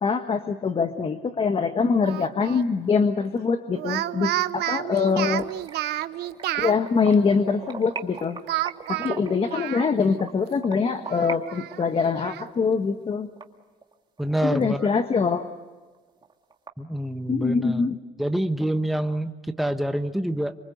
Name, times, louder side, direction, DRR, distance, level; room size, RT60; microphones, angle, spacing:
voice 1, 0.0-5.5 6.6-8.4 8.9-13.3 14.4-15.5 17.3-18.0, left 5 dB, 35° left, 8 dB, 1.4 m, -24 dB
Speech, 2.0-2.7 3.7-6.8 8.5-10.2 10.5-10.6 11.0-12.5, right 15 dB, 75° right, 0.8 m, -30 dB
sound 1, 4.9-11.4 11.7-14.2 14.6-14.7 15.1-15.2 15.6-15.7 15.9-16.7, right 5 dB, 25° right, 2.1 m, -40 dB
voice 2, 14.2-14.9 16.8-17.8 18.2-20.5, right 1 dB, ahead, 7 dB, 1.2 m, -26 dB
27.5 x 24.5 x 8.1 m, 1.3 s
cardioid pair, 110°, 17 cm